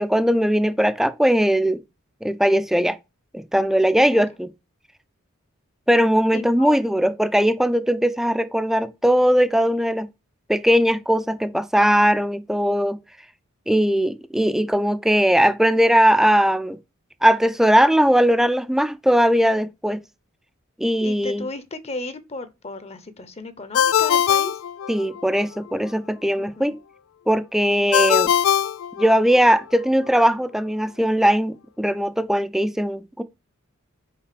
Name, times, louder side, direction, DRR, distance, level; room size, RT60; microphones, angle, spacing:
voice 1, 0.0-1.8 2.2-3.0 3.3-4.5 5.9-10.1 10.5-13.0 13.7-16.8 17.2-20.0 20.8-21.4 24.9-26.8 27.3-28.3 29.0-33.2, equal, ahead, 0.4 m, -19 dB
voice 2, 6.3-7.0 21.0-24.6 26.4-26.7, left 3 dB, 30° left, 0.7 m, -35 dB
Ringtone, 23.7-25.4 27.9-29.6, left 9 dB, 80° left, 0.4 m, -21 dB
5.8 x 5.1 x 5.0 m
head